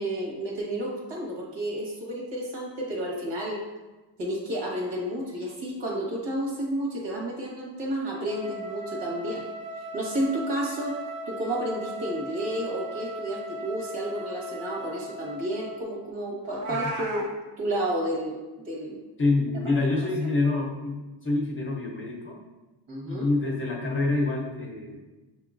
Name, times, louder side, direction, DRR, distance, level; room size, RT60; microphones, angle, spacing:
voice 1, 0.0-3.6 4.2-9.4 9.9-11.0 11.3-17.3 17.6-18.4 18.6-19.0 22.9-23.3, right 1 dB, 70° right, -2 dB, 1.5 m, -31 dB
Wind instrument woodwind instrument, 8.2-15.9, equal, 20° right, 0.3 m, -38 dB
Meow, 16.4-17.3, right 2 dB, 45° right, 0.8 m, -32 dB
voice 2, 19.2-22.4 23.1-25.0, left 2 dB, 30° left, -2 dB, 0.6 m, -27 dB
6.6 x 2.9 x 2.5 m, 1.1 s
cardioid pair, 165°, 45 cm